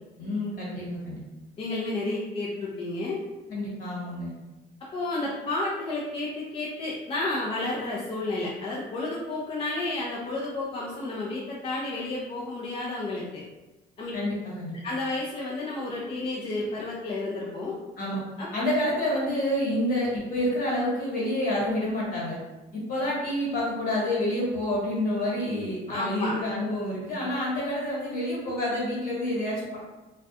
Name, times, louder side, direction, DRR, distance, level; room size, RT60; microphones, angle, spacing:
voice 1, 0.2-1.2 3.5-4.3 14.1-14.7 18.0-18.2 18.5-22.4 22.7-29.8, left 1 dB, 55° left, -6 dB, 1.2 m, -28 dB
voice 2, 1.6-3.2 4.9-13.4 14.0-14.1 14.8-17.8 18.4-18.5 25.9-26.4, left 2 dB, 35° left, -5 dB, 0.4 m, -31 dB
2.3 x 2.1 x 2.7 m, 1.1 s
cardioid pair, 110°, 17 cm